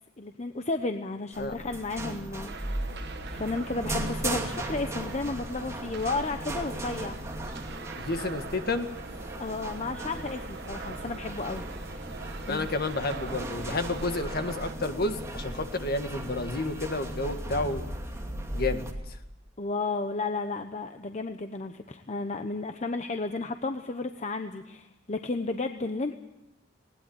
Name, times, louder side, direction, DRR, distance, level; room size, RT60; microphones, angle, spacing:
voice 1, 0.2-7.2 9.4-12.0 12.5-12.7 19.6-26.2, left 3 dB, 35° left, 7 dB, 0.9 m, -33 dB
sound 1, 1.3-18.9, right 1 dB, 15° right, 2.5 m, -37 dB
sound 2, 2.5-14.7, right 4 dB, 60° right, 1.5 m, -43 dB
voice 2, 8.0-8.9 12.5-17.9 18.5-18.8, left 2 dB, 50° left, 7 dB, 1.8 m, -30 dB
20.0 x 18.5 x 8.9 m, 0.97 s
head